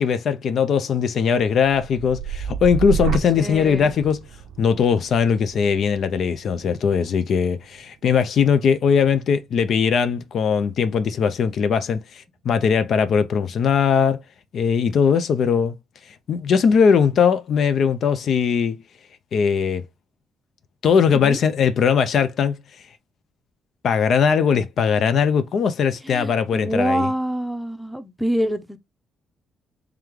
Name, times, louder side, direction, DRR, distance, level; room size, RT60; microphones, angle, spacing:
voice 1, 0.0-4.2 4.6-14.2 14.5-15.8 16.3-18.8 19.3-19.8 20.8-22.6 23.8-27.1, left 6 dB, 60° left, 0.5 m, -20 dB
sound 1, 1.6-9.4 9.9-10.4, right 9 dB, 85° right, 0.5 m, -32 dB
voice 2, 3.3-3.9 21.1-21.4 26.0-28.8, equal, ahead, 0.7 m, -26 dB
3.4 x 3.1 x 3.6 m
cardioid pair, 90°, 0 cm